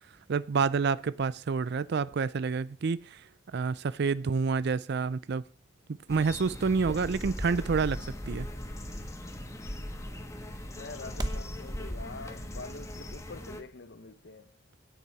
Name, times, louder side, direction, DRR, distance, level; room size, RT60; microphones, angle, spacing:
voice 1, 0.3-3.2 3.5-5.4 6.1-8.5, right 5 dB, 60° right, 0.4 m, -28 dB
sound 1, 5.3-11.6, right 1 dB, 20° right, 0.9 m, -45 dB
sound 2, 6.1-13.6, left 1 dB, 15° left, 1.3 m, -39 dB
voice 2, 10.7-14.6, left 3 dB, 60° left, 0.8 m, -46 dB
16.5 x 6.9 x 4.8 m
head